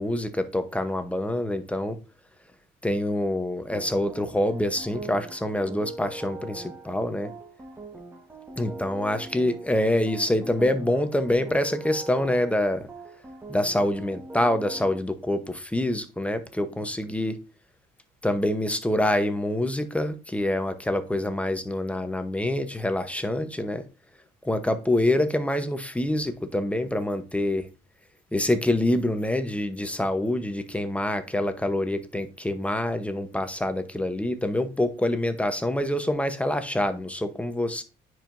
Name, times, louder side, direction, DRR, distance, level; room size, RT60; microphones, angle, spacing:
voice 1, 0.0-2.0 2.8-7.3 8.6-12.9 13.5-17.4 18.2-23.8 24.4-27.7 28.3-37.8, left 1 dB, 5° left, 0.8 m, -26 dB
sound 1, 3.7-15.0, right 3 dB, 15° right, 1.2 m, -41 dB
9.9 x 4.7 x 2.6 m
cardioid pair, 110°, 17 cm